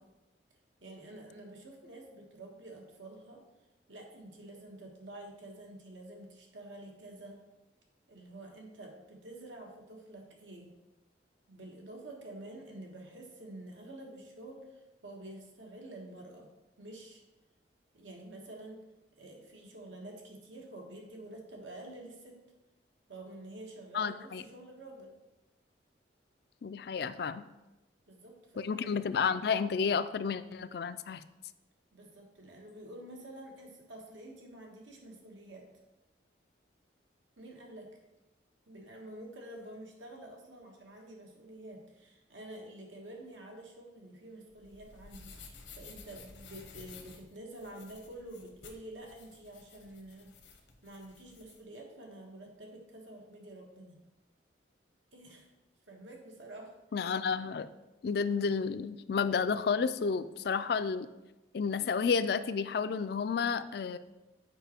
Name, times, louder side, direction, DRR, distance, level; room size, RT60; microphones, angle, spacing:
voice 1, 0.8-3.5 3.9-7.4 8.1-10.8 11.5-16.5 16.8-17.2 17.9-18.8 19.2-22.4 23.1-25.2 28.1-29.0 31.9-35.7 37.4-38.0 38.7-50.3 50.8-54.0 55.1-55.5 55.9-56.7, right 1 dB, 90° right, 1 dB, 1.5 m, -48 dB
voice 2, 23.9-24.4 26.6-27.4 28.6-31.2 56.9-57.7 58.0-61.1 61.5-64.0, left 5 dB, 55° left, 13 dB, 0.3 m, -31 dB
sound 1, 44.5-51.6, left 4 dB, 85° left, 1.1 m, -53 dB
7.0 x 5.3 x 4.3 m, 1.0 s
head